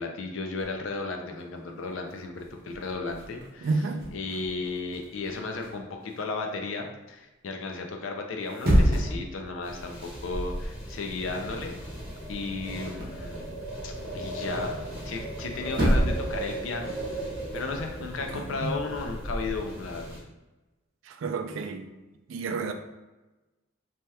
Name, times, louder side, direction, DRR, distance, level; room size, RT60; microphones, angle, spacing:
voice 1, 0.0-3.7 4.1-11.8 12.3-13.5 13.8-14.7 15.0-17.2 17.5-20.2, left 3 dB, 70° left, 0.5 m, -34 dB
sound 1, 0.6-0.9 1.6-1.7 1.9-6.2 8.3-9.3 9.7-9.9 10.3-10.8 11.1-13.3 15.3-15.4 15.7-16.4 16.7-19.5, equal, 45° right, 0.8 m, -29 dB
voice 2, 3.6-4.1 18.2-18.8 21.1-21.9 22.3-22.7, right 4 dB, 70° right, 0.3 m, -31 dB
sound 2, 9.6-20.2, right 1 dB, 20° left, 1.0 m, -37 dB
2.8 x 2.2 x 3.3 m
head